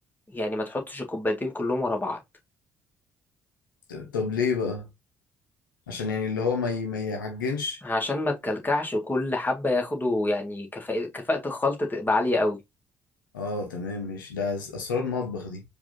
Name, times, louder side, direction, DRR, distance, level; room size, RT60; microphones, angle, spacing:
voice 1, 0.3-2.2 7.8-12.6, left 2 dB, 20° left, 1.8 m, -27 dB
voice 2, 3.9-4.9 5.9-7.8 13.3-15.6, left 4 dB, 80° left, 0.8 m, -29 dB
4.7 x 2.7 x 3.7 m
figure-of-eight pair, 45°, 10 cm